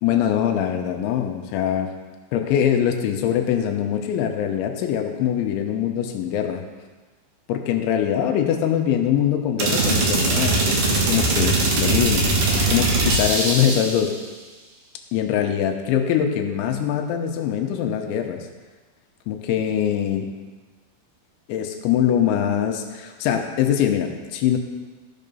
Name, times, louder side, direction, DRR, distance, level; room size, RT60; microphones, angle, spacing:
voice 1, 0.0-1.9 2.3-6.6 7.5-14.2 15.1-18.5 19.3-20.3 21.5-24.6, left 9 dB, 80° left, 4 dB, 3.1 m, -23 dB
sound 1, 9.6-14.0, right 3 dB, 60° right, 2.4 m, -21 dB
13.5 x 6.4 x 5.4 m, 1.3 s
omnidirectional pair, 5.5 m